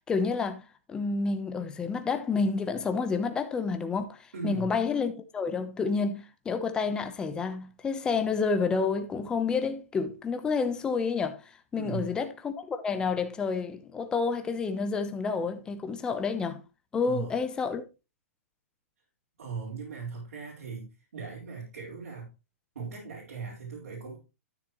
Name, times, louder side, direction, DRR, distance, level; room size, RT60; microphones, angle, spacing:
voice 1, 0.1-0.6 0.9-16.6 16.9-17.8, left 4 dB, 10° left, 1.0 m, -29 dB
voice 2, 4.3-4.7 11.7-12.1 17.0-17.4 19.4-22.3 22.7-24.2, right 5 dB, 75° right, 4.7 m, -38 dB
13.0 x 6.9 x 3.1 m
hypercardioid pair, 160°, 8 cm